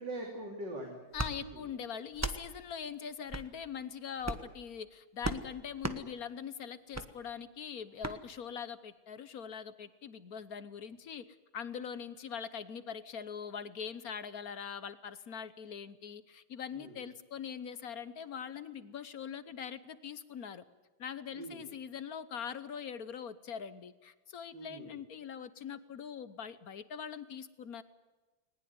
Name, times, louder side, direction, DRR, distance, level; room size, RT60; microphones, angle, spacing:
voice 1, 0.0-1.0 1.4-1.6 16.7-17.0 21.3-21.7 24.5-24.9, right 1 dB, 55° right, 2 dB, 3.7 m, -42 dB
voice 2, 1.1-11.2 11.5-20.6 21.0-27.8, left 7 dB, 55° left, 15 dB, 1.2 m, -42 dB
sound 1, 1.1-1.3 2.1-2.4 3.3-3.5 4.2-4.5 5.2-5.4 5.8-6.0 6.9-7.1 8.0-8.2, right 2 dB, 10° right, 0.7 m, -35 dB
20.5 x 20.0 x 9.6 m, 1.2 s
omnidirectional pair, 2.3 m